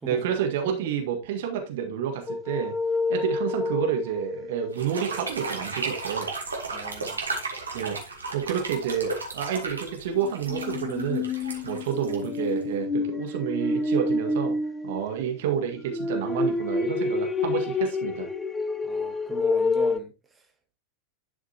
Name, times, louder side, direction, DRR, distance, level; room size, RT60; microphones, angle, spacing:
voice 1, 0.1-2.7 3.1-6.3 7.7-8.0 8.3-11.3 11.6-14.6 14.8-18.3, right 8 dB, 55° right, 1.8 m, -29 dB
sound 1, 2.3-5.0 10.2-15.2 15.8-20.0, left 3 dB, 15° left, 0.7 m, -28 dB
sound 2, 4.7-12.7, right 3 dB, 75° right, 2.4 m, -34 dB
voice 2, 6.7-7.2 18.8-20.1, right 3 dB, 10° right, 1.7 m, -38 dB
11.5 x 5.8 x 2.9 m
figure-of-eight pair, 90°, 0 cm